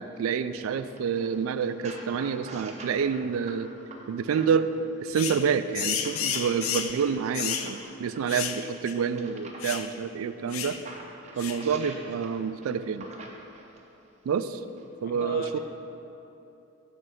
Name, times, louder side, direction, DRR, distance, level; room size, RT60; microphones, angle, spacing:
voice 1, 0.0-3.7 4.1-4.7 5.0-10.8 11.4-13.1 14.3-14.6 15.0-15.6, right 6 dB, 85° right, 12 dB, 0.3 m, -28 dB
sound 1, 0.7-4.8 5.7-9.9 10.5-13.9 14.7-14.8, right 2 dB, 35° right, 0.7 m, -46 dB
sound 2, 5.1-5.4 5.7-7.0 7.3-7.7 8.3-8.6 8.9-9.0 9.6-9.9 10.5-10.8 11.4-11.6, left 8 dB, 85° left, 0.5 m, -31 dB
voice 2, 15.0-15.6, left 4 dB, 45° left, 2 dB, 0.7 m, -39 dB
9.1 x 3.3 x 6.2 m, 2.8 s
head